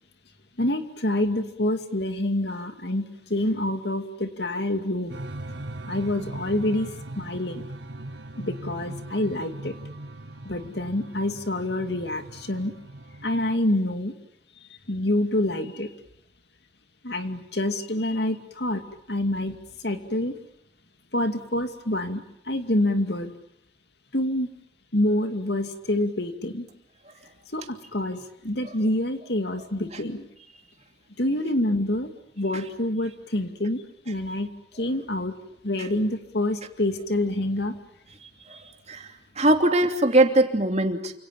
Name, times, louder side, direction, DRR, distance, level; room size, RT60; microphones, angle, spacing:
voice 1, 0.6-5.2 5.9-6.9 7.2-7.7 8.4-9.7 10.4-12.7 13.2-14.1 14.9-15.9 17.0-18.8 19.1-20.4 21.1-23.3 24.1-24.5 24.9-26.7 27.5-30.3 31.2-32.1 32.4-34.5 34.7-35.4 35.6-37.7, left 1 dB, 60° left, 7 dB, 2.5 m, -27 dB
sound 1, 5.1-13.5, right 1 dB, 80° right, 1.9 m, -39 dB
voice 2, 39.4-41.1, right 1 dB, 35° right, 5 dB, 2.9 m, -21 dB
29.0 x 27.0 x 7.3 m, 0.71 s
head